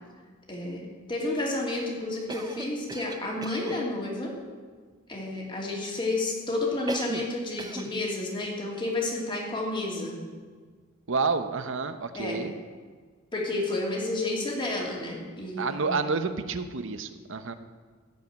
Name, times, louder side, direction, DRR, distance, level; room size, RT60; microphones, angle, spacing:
voice 1, 0.5-0.8 1.1-4.3 5.1-10.2 12.2-12.4 13.3-16.0, left 2 dB, 25° left, -2 dB, 2.8 m, -31 dB
Cough, 2.3-3.9 6.9-7.3 7.6-8.0, right 2 dB, 20° right, 0.6 m, -37 dB
voice 2, 11.1-12.5 15.6-17.6, right 4 dB, 65° right, 10 dB, 0.9 m, -29 dB
15.0 x 5.6 x 9.3 m, 1.5 s
head